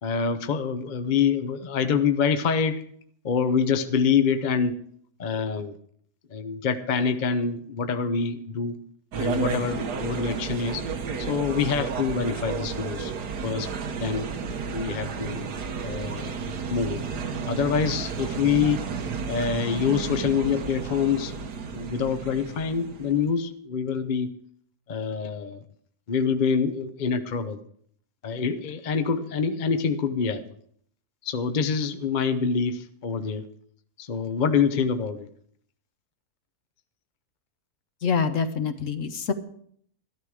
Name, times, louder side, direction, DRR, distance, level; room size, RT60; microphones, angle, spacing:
voice 1, 0.0-2.8 3.2-4.8 5.2-5.7 6.3-8.8 9.1-10.8 11.2-13.1 13.4-13.7 14.0-14.3 14.7-15.5 15.8-16.4 16.7-17.1 17.5-18.8 19.3-21.5 21.7-24.3 24.9-25.6 26.1-27.6 28.2-30.4 31.2-33.4 34.0-35.3, left 6 dB, 40° left, 9 dB, 0.7 m, -26 dB
sound 1, 9.1-23.3, right 5 dB, 85° right, 1.7 m, -32 dB
voice 2, 38.0-39.3, left 6 dB, 55° left, 9 dB, 1.2 m, -26 dB
13.5 x 12.5 x 4.8 m, 0.63 s
omnidirectional pair, 1.7 m